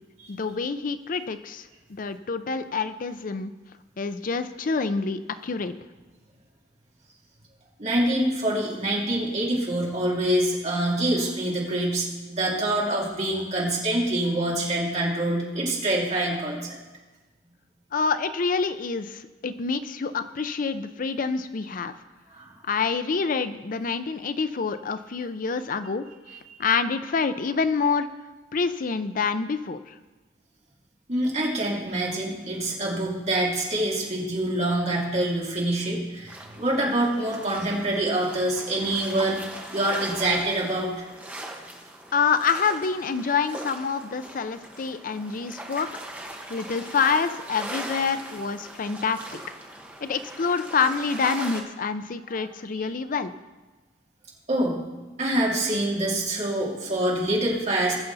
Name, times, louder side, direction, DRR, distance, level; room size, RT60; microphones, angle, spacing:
voice 1, 0.3-3.5 4.0-5.7 17.9-21.9 22.6-26.1 26.6-28.1 28.5-30.0 42.1-45.9 46.5-49.4 50.0-53.3, left 5 dB, 45° left, 11 dB, 0.5 m, -27 dB
voice 2, 7.8-16.8 22.3-22.4 31.1-39.4 39.7-41.0 46.6-46.7 54.5-54.8 55.2-57.9, right 1 dB, 40° right, -4 dB, 2.8 m, -25 dB
sound 1, 36.3-51.6, right 1 dB, 10° right, 1.1 m, -40 dB
20.0 x 6.9 x 4.0 m, 1.2 s
head